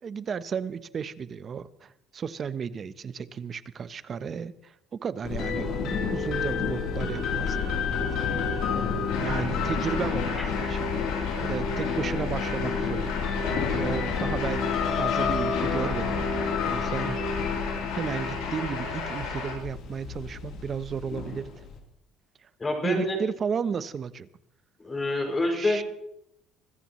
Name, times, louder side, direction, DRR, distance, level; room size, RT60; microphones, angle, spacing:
voice 1, 0.0-7.6 9.1-10.8 11.4-13.2 13.8-17.2 17.9-21.5 22.4-22.5 22.8-24.3 25.5-25.8, right 6 dB, 40° right, 15 dB, 0.8 m, -33 dB
sound 1, 5.2-21.8, left 5 dB, 65° left, 3.5 m, -29 dB
sound 2, 9.1-19.5, left 4 dB, 85° left, 7.6 m, -35 dB
voice 2, 22.6-23.2 24.8-25.8, left 2 dB, 20° left, 2 dB, 6.2 m, -27 dB
25.0 x 14.5 x 3.2 m, 0.78 s
supercardioid pair, 100°, 0 cm